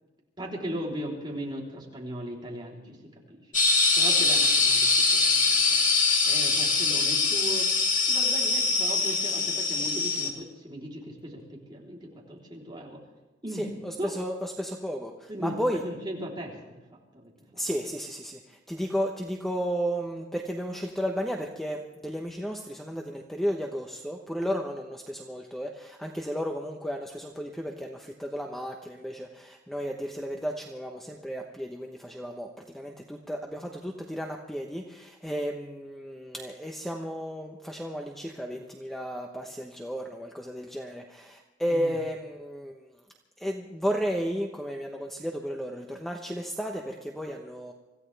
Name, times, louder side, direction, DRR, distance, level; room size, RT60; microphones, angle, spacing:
voice 1, 0.4-5.8 6.3-13.0 13.4-13.7 14.0-14.1 15.3-16.8 17.1-17.6 41.7-42.0, equal, 25° right, -3 dB, 3.6 m, -38 dB
sound 1, 3.5-10.3, left 4 dB, 45° left, 2.2 m, -23 dB
voice 2, 13.6-15.8 17.6-32.5 32.7-42.9 43.4-47.7, equal, ahead, 1 dB, 1.0 m, -33 dB
25.5 x 15.5 x 3.4 m, 1.1 s
head